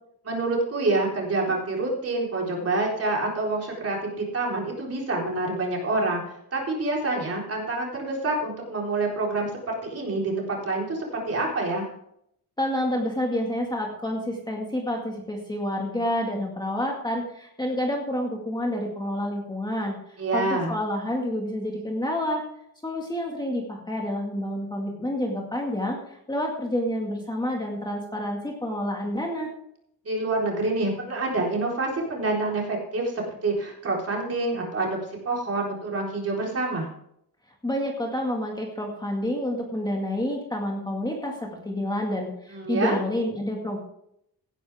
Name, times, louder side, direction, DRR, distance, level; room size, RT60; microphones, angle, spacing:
voice 1, 0.3-6.2 6.5-11.9 20.2-20.7 30.0-35.0 35.3-36.9 42.5-43.0, right 2 dB, 40° right, -2 dB, 4.0 m, -27 dB
voice 2, 12.6-22.4 22.8-26.0 26.3-29.5 37.6-43.8, left 1 dB, 10° left, 0 dB, 1.9 m, -28 dB
16.5 x 10.0 x 3.5 m, 0.73 s
wide cardioid pair, 160°, 38 cm